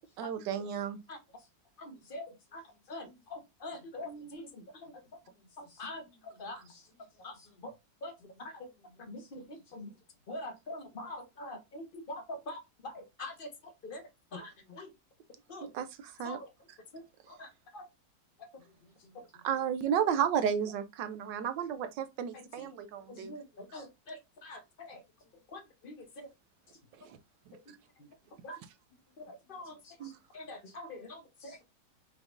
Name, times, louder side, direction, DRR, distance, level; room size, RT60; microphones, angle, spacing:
voice 1, 0.2-1.0 6.5-6.6 15.6-16.4 16.7-16.8 19.4-23.4 27.0-27.2 30.0-30.2, right 8 dB, 80° right, 1.3 m, -33 dB
voice 2, 1.8-2.6 2.9-4.9 5.6-6.0 6.4-6.6 7.2-7.3 7.6-7.7 8.0-8.1 8.4-8.6 9.1-9.4 9.7-9.9 10.3-13.5 13.8-14.0 14.3-14.9 15.5-15.7 16.2-16.4 16.9-17.0 17.3-17.9 22.6-22.7 23.1-25.0 25.5-26.3 27.7-27.8 28.4-28.6 29.2-29.8 30.3-31.6, left 1 dB, 40° left, 0.8 m, -44 dB
voice 3, 2.7-3.2 4.0-4.3 5.2-7.7 8.2-8.7 9.7-9.9 18.6-19.5 22.9-23.9 29.5-29.6 29.8-30.1 30.7-30.8 31.4-31.6, left 3 dB, 80° left, 2.3 m, -63 dB
5.2 x 3.6 x 2.5 m
omnidirectional pair, 1.9 m